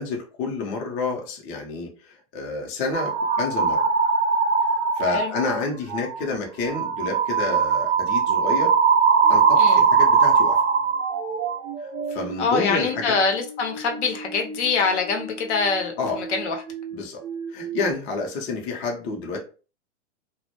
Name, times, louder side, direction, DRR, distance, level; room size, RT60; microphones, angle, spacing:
voice 1, 0.0-3.9 4.6-8.7 9.3-10.6 11.8-13.1 16.0-16.2 16.9-17.2 17.5-19.4, left 3 dB, 30° left, 0.6 m, -29 dB
sound 1, 2.9-5.5 5.9-6.2 6.6-17.0 17.2-17.9, right 5 dB, 80° right, 0.7 m, -22 dB
voice 2, 12.4-16.6, left 4 dB, 65° left, 0.7 m, -24 dB
2.1 x 2.0 x 2.8 m
hypercardioid pair, 125°, 36 cm